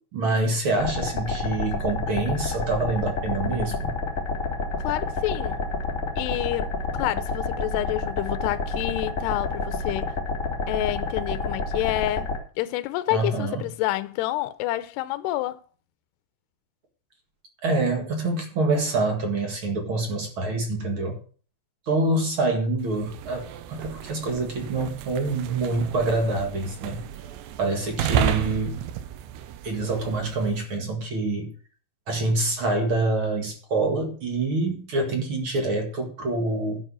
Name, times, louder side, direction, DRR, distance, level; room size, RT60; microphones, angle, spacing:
voice 1, 0.1-3.9 13.1-13.6 17.6-21.2 21.9-27.0 27.6-28.8 29.6-31.5 32.1-36.8, right 2 dB, 50° right, 1.6 m, -26 dB
sound 1, 0.8-12.4, left 3 dB, 25° left, 2.1 m, -29 dB
voice 2, 4.8-5.6 6.2-10.2 10.7-15.6, left 16 dB, 80° left, 2.5 m, -28 dB
sound 2, 22.8-30.7, right 10 dB, 75° right, 2.8 m, -32 dB
11.5 x 7.3 x 6.3 m
omnidirectional pair, 5.4 m